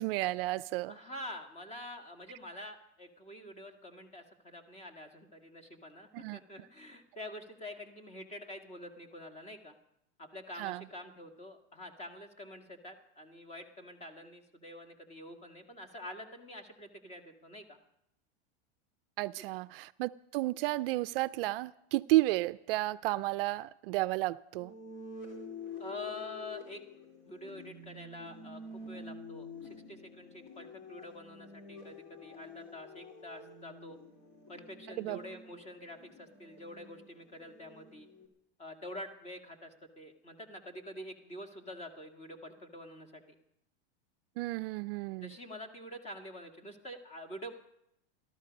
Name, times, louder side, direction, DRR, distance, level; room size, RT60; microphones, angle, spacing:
voice 1, 0.0-0.9 6.1-6.4 10.6-10.8 19.2-24.7 35.0-35.2 44.4-45.3, right 18 dB, 60° right, 16 dB, 0.4 m, -32 dB
voice 2, 0.9-9.8 10.2-17.8 25.8-26.8 27.2-34.0 34.5-38.1 38.6-43.2 45.2-47.5, left 1 dB, 20° left, 5 dB, 1.9 m, -47 dB
sound 1, 24.5-38.3, left 3 dB, 50° left, 3.7 m, -48 dB
17.5 x 13.5 x 5.3 m, 0.80 s
supercardioid pair, 125°, 32 cm